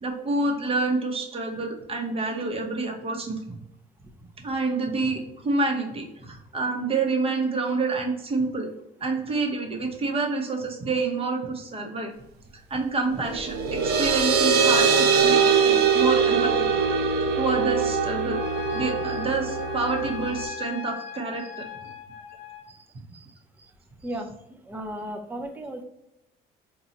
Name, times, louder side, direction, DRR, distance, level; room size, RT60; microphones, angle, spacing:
voice 1, 0.0-3.4 4.4-8.7 9.0-12.1 12.7-16.7 17.0-18.4 18.7-21.6 22.7-22.8 23.1-23.3, right 3 dB, 35° right, 2 dB, 0.8 m, -28 dB
sound 1, 13.3-20.5, right 6 dB, 75° right, 0.5 m, -22 dB
Trumpet, 18.3-22.7, left 9 dB, 40° left, 0.9 m, -39 dB
voice 2, 24.0-25.8, right 1 dB, 10° right, 5 dB, 0.5 m, -35 dB
4.0 x 2.3 x 2.8 m, 0.85 s
cardioid pair, 110°, 17 cm